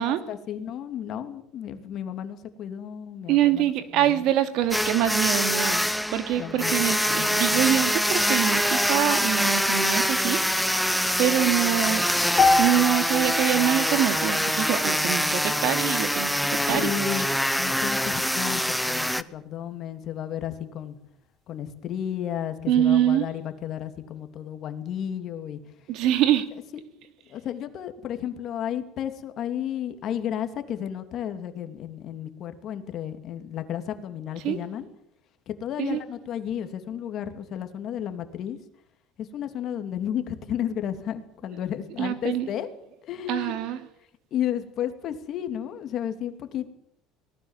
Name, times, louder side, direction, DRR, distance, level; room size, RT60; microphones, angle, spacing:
voice 1, 0.0-4.3 6.4-7.8 16.6-17.3 17.6-21.0 21.5-25.6 27.3-34.9 35.5-38.6 39.2-42.7 43.1-43.5 44.3-46.7, left 10 dB, 50° left, 2.9 m, -33 dB
voice 2, 3.3-5.8 6.1-10.4 11.2-12.1 12.6-17.1 22.7-23.3 25.9-26.5 34.4-34.6 35.8-36.0 42.0-42.5 43.3-43.8, right 11 dB, 65° right, 2.8 m, -24 dB
sound 1, 4.7-19.2, equal, ahead, 0.9 m, -24 dB
sound 2, 12.4-16.5, left 3 dB, 20° left, 5.7 m, -28 dB
24.5 x 19.0 x 7.5 m
cardioid pair, 140°, 0 cm